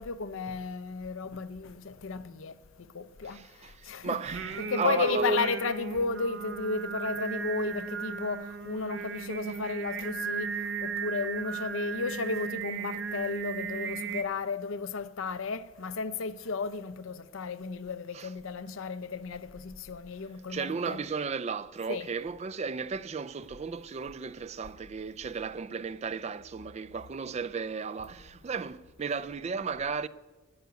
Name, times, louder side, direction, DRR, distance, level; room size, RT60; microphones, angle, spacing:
voice 1, 0.0-4.2 4.6-10.5 10.8-21.0 21.9-22.1, left 4 dB, 70° left, 0.6 m, -34 dB
voice 2, 3.2-5.4 18.1-18.3 20.5-30.1, right 5 dB, 30° right, 0.3 m, -35 dB
Singing, 4.2-14.2, right 4 dB, 60° right, 0.9 m, -35 dB
12.5 x 8.1 x 9.4 m
head